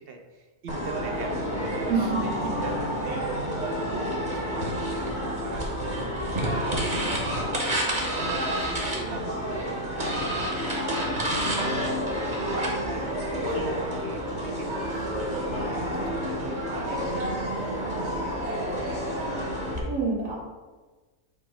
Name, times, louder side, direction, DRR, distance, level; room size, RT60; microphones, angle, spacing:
voice 1, 0.0-1.9 2.2-11.3 12.3-15.1 15.5-18.5, right 3 dB, 50° right, 3 dB, 0.8 m, -42 dB
sound 1, 0.7-19.8, equal, 35° right, 1.3 m, -29 dB
voice 2, 1.9-2.2 19.9-20.4, right 5 dB, 65° right, -3 dB, 2.0 m, -26 dB
8.0 x 3.0 x 4.9 m, 1.3 s
omnidirectional pair, 1.5 m